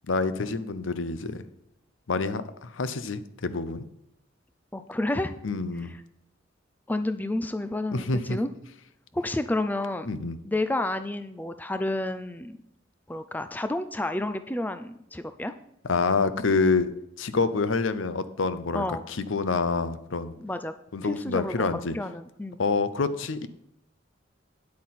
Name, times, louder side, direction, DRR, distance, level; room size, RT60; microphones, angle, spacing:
voice 1, 0.1-1.4 2.1-3.9 5.4-6.0 7.9-8.4 10.1-10.4 15.8-16.9 17.2-20.3 20.9-22.0 22.6-23.5, left 4 dB, 90° left, 13 dB, 0.7 m, -27 dB
voice 2, 4.7-5.3 6.9-8.5 9.1-10.1 10.4-12.6 13.1-15.5 18.7-19.0 20.4-20.7 21.0-22.6, left 1 dB, 10° left, 10 dB, 0.4 m, -30 dB
9.7 x 8.4 x 4.2 m, 0.80 s
head